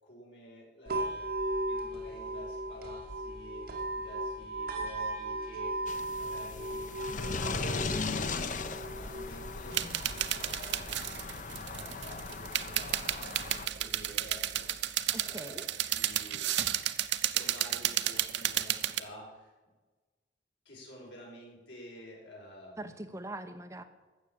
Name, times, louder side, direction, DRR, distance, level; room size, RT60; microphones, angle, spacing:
voice 1, 0.0-1.2 1.6-7.7 8.5-9.9 10.3-10.9 11.4-16.5 17.3-19.5 20.7-22.8, equal, 80° left, -2 dB, 5.3 m, -50 dB
sound 1, 0.9-14.9, right 1 dB, 55° right, 2.4 m, -38 dB
sound 2, 5.9-13.7, left 4 dB, 45° left, 0.8 m, -38 dB
sound 3, 9.7-19.0, right 12 dB, 75° right, 0.7 m, -32 dB
voice 2, 15.1-15.7 22.8-23.8, right 1 dB, 15° right, 8 dB, 0.8 m, -42 dB
14.5 x 6.2 x 8.8 m, 1.3 s
head